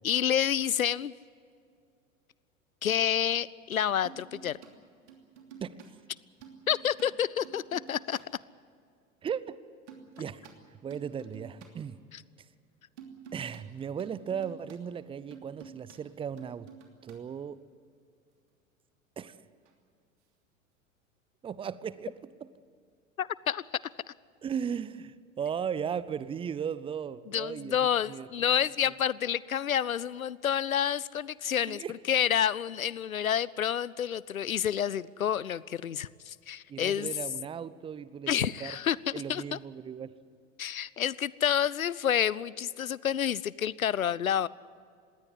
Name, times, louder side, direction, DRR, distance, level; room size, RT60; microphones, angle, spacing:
voice 1, 0.0-1.1 2.8-4.6 6.7-8.2 12.1-12.2 23.2-23.6 27.3-37.1 38.3-39.6 40.6-44.5, left 9 dB, 85° left, 22 dB, 0.5 m, -29 dB
sound 1, 4.0-4.7 5.1-5.9 6.4-8.3 9.9-10.6 10.9-11.7 13.0-13.6 14.0-14.8 15.3-16.0 16.4-17.2 19.6-19.7, right 7 dB, 60° right, 3.0 m, -50 dB
voice 2, 9.2-9.6 10.2-10.5 10.8-12.0 13.3-16.7 17.0-17.6 19.2-19.4 21.4-22.1 22.4-22.5 24.4-27.8 28.1-28.3 31.7-31.9 36.7-38.8 39.1-40.1, right 7 dB, 15° right, 18 dB, 0.6 m, -36 dB
21.0 x 17.0 x 9.6 m, 2.3 s
figure-of-eight pair, 85°, 40 cm